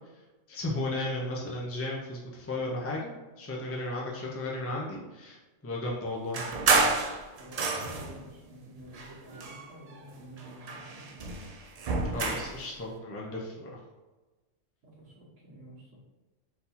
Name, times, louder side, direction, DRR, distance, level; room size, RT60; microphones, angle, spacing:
voice 1, 0.5-5.4 5.6-6.4 12.1-13.7, left 2 dB, 25° left, -3 dB, 0.3 m, -34 dB
sound 1, 6.3-8.2 8.9-10.1 10.4-12.6, right 4 dB, 65° right, 0.3 m, -29 dB
voice 2, 7.4-11.3 14.8-16.0, right 1 dB, 80° right, -10 dB, 1.4 m, -49 dB
4.1 x 2.8 x 4.1 m, 1.2 s
omnidirectional pair, 1.3 m